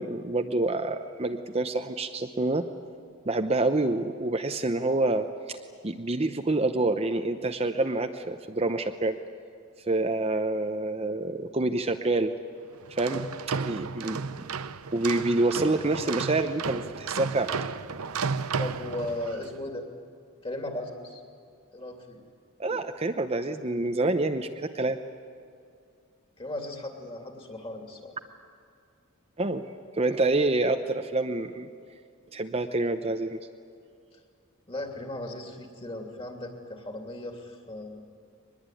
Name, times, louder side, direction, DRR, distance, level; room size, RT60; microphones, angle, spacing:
voice 1, 0.0-2.7 3.3-5.6 5.8-9.2 9.9-12.3 12.9-13.2 13.5-14.2 14.9-17.5 22.6-24.5 24.7-25.0 29.4-29.6 29.9-31.7 32.3-33.4, right 2 dB, 30° right, 6 dB, 0.8 m, -27 dB
sound 1, 12.8-19.5, right 5 dB, 90° right, 0.8 m, -33 dB
voice 2, 18.6-19.9 20.4-21.2 21.7-22.2 26.4-28.1 34.7-38.0, left 1 dB, 25° left, 3 dB, 2.9 m, -37 dB
23.0 x 21.0 x 9.2 m, 2.4 s
head